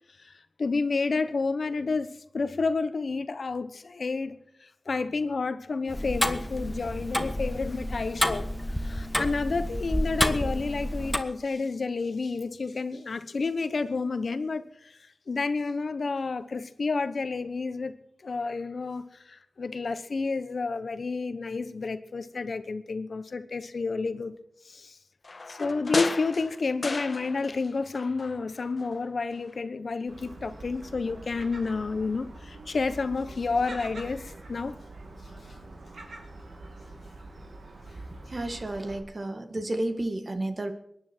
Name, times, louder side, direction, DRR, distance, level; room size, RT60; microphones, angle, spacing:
voice 1, 0.6-2.1 2.3-8.5 8.8-15.0 15.3-17.9 18.2-24.3 24.6-25.0 25.5-34.7, left 4 dB, 75° left, 12 dB, 1.0 m, -30 dB
Tick-tock, 5.9-11.2, equal, 10° left, 1.4 m, -29 dB
sound 1, 25.2-27.7 27.9-29.0 29.4-29.5, left 3 dB, 55° left, 0.6 m, -34 dB
Gull seagull, 30.1-39.0, right 2 dB, 85° right, 2.5 m, -44 dB
voice 2, 38.3-40.7, right 1 dB, 45° right, 7 dB, 1.8 m, -31 dB
23.5 x 10.0 x 4.5 m, 0.75 s
wide cardioid pair, 65°, 0 cm